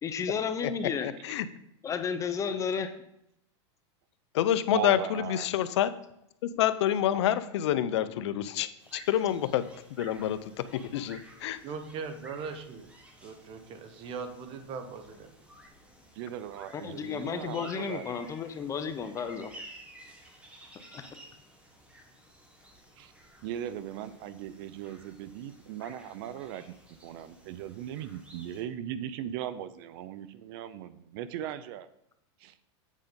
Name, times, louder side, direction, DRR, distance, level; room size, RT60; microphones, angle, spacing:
voice 1, 0.0-1.1 1.8-2.9 16.7-19.5 20.9-21.1, left 6 dB, 20° left, 9 dB, 0.7 m, -32 dB
voice 2, 1.0-1.5 4.3-5.9 6.4-9.6 10.0-11.6, left 11 dB, 70° left, 13 dB, 0.6 m, -28 dB
voice 3, 4.7-5.5 16.2-18.1 23.0-23.1 23.4-26.7 27.0-31.9 32.4-32.6, right 10 dB, 55° right, 14 dB, 0.6 m, -38 dB
sound 1, 8.8-28.6, right 1 dB, 10° right, 1.7 m, -53 dB
voice 4, 11.6-12.9 13.2-15.4, right 5 dB, 35° right, 9 dB, 1.0 m, -40 dB
8.4 x 5.1 x 5.2 m, 0.79 s
supercardioid pair, 135°, 15 cm